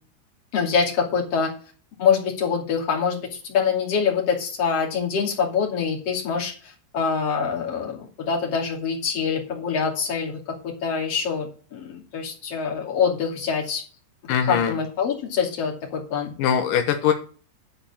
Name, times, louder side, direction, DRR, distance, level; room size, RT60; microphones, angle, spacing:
voice 1, 0.5-1.5 2.0-10.4 10.6-13.8 14.2-16.3, left 6 dB, 40° left, -1 dB, 3.0 m, -25 dB
voice 2, 14.3-14.7 16.4-17.1, left 8 dB, 85° left, 6 dB, 1.8 m, -21 dB
11.0 x 4.8 x 7.1 m, 0.40 s
omnidirectional pair, 5.3 m